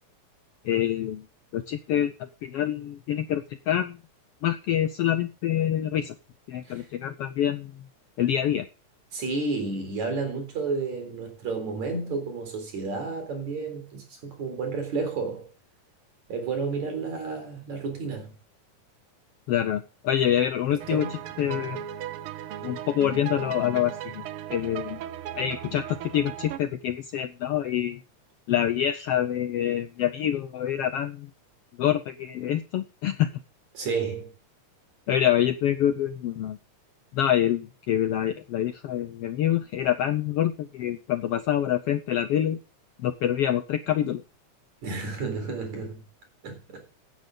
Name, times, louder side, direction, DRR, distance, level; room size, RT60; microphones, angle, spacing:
voice 1, 0.6-1.2 1.5-4.0 4.4-6.1 6.5-7.8 8.2-8.7 19.5-21.8 22.6-24.2 24.5-25.0 25.3-28.0 28.5-31.3 31.8-33.3 35.1-36.6 37.1-42.6 43.0-44.2, left 10 dB, 75° left, 1.4 m, -26 dB
voice 2, 9.1-15.5 16.3-18.3 20.9-21.2 33.8-34.3 44.8-46.0 46.4-46.8, right 4 dB, 65° right, 5.3 m, -31 dB
sound 1, 20.8-26.6, right 11 dB, 90° right, 1.2 m, -37 dB
16.0 x 9.5 x 3.8 m
omnidirectional pair, 3.5 m